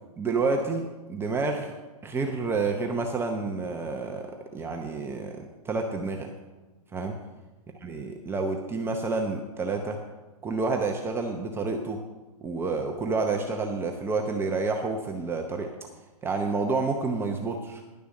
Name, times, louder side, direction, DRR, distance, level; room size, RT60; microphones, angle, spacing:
voice 1, 0.2-1.7 2.0-4.3 4.5-6.3 6.9-7.2 7.8-10.0 10.4-12.0 12.4-15.7 16.2-17.8, right 3 dB, 10° right, 2 dB, 0.7 m, -29 dB
11.0 x 6.8 x 6.5 m, 1.2 s
hypercardioid pair, 135°, 19 cm